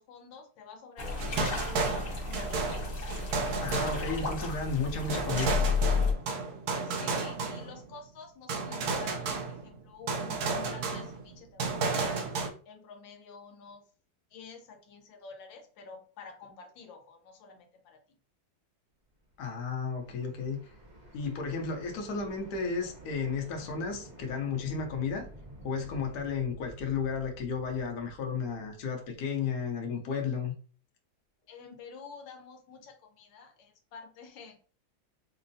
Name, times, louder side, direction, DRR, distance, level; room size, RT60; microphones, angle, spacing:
voice 1, 0.0-2.5 6.7-12.3 12.7-13.9 14.3-18.0 31.5-34.6, left 5 dB, 90° left, 1.5 m, -49 dB
sound 1, 1.0-6.1, left 4 dB, 35° left, 1.1 m, -32 dB
sound 2, 1.2-4.5 5.1-7.9 8.5-9.8 10.1-12.5, right 4 dB, 65° right, 1.0 m, -32 dB
voice 2, 3.6-5.5 19.4-20.6 21.1-25.3 25.6-30.5, left 5 dB, 60° left, 1.2 m, -33 dB
sound 3, 19.3-29.2, right 1 dB, 40° right, 0.6 m, -51 dB
5.3 x 2.1 x 2.6 m
omnidirectional pair, 2.0 m